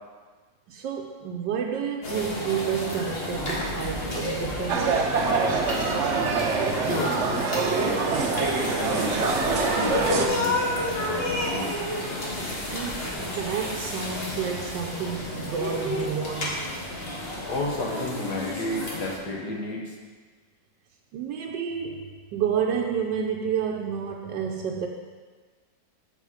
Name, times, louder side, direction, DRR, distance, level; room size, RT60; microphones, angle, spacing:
voice 1, 0.7-5.1 12.7-16.7 21.1-24.9, right 7 dB, 80° right, 1 dB, 1.3 m, -30 dB
sound 1, 2.0-19.2, left 1 dB, 35° left, 1.5 m, -31 dB
sound 2, 4.7-10.3, right 5 dB, 55° right, 0.8 m, -25 dB
voice 2, 6.0-6.5 6.9-8.2 8.8-11.7 17.5-20.0, left 2 dB, 65° left, -1 dB, 1.7 m, -33 dB
7.1 x 6.8 x 4.8 m, 1.5 s
omnidirectional pair, 1.9 m